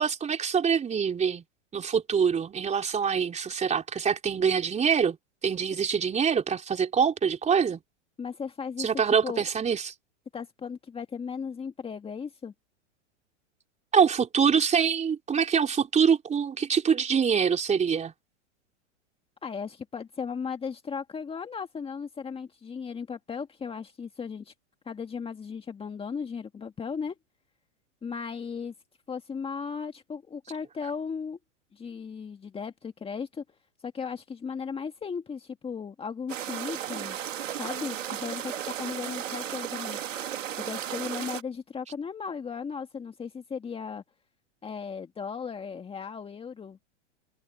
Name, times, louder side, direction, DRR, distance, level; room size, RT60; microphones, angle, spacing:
voice 1, 0.0-1.4 1.7-5.2 5.4-7.8 8.8-9.9 13.9-18.1, right 7 dB, 20° right, 3.9 m, -25 dB
voice 2, 8.2-9.5 10.3-12.5 19.4-24.5 24.9-27.2 28.0-28.7 29.1-31.4 31.7-33.4 33.8-37.2 37.6-40.0 40.6-44.0 44.6-46.9, left 6 dB, 15° left, 1.8 m, -36 dB
sound 1, 36.3-41.4, right 10 dB, 85° right, 2.5 m, -34 dB
hypercardioid pair, 120°, 37 cm